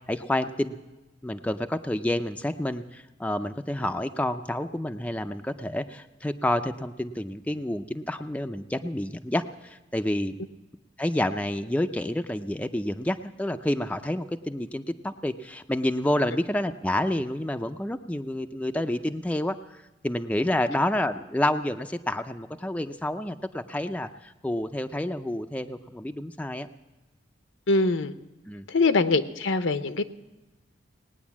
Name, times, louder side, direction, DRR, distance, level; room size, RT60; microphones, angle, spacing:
voice 1, 0.1-0.8 1.2-10.4 11.0-26.7 28.5-28.6, left 1 dB, 5° left, 7 dB, 0.4 m, -29 dB
voice 2, 27.7-28.1 28.7-30.0, left 3 dB, 80° left, 11 dB, 0.8 m, -23 dB
19.0 x 9.5 x 7.2 m, 1.1 s
head